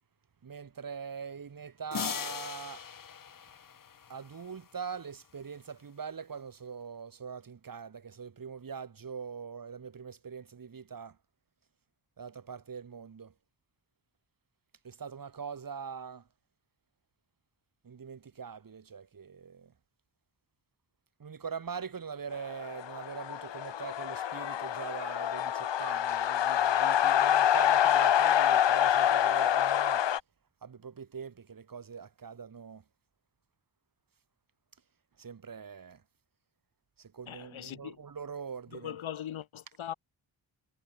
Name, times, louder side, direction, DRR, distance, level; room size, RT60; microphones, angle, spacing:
voice 1, 0.4-2.9 4.1-11.2 12.2-13.3 14.8-16.2 17.8-19.7 21.2-30.1 30.6-32.8 35.2-36.0 37.0-39.0, right 6 dB, 45° right, 4.7 m, -43 dB
sound 1, 1.9-4.4, left 7 dB, 45° left, 1.7 m, -39 dB
sound 2, 22.5-30.2, left 10 dB, 65° left, 1.6 m, -26 dB
voice 2, 37.3-38.0 38.7-39.9, left 10 dB, 90° left, 3.1 m, -40 dB
wide cardioid pair, 135°, 46 cm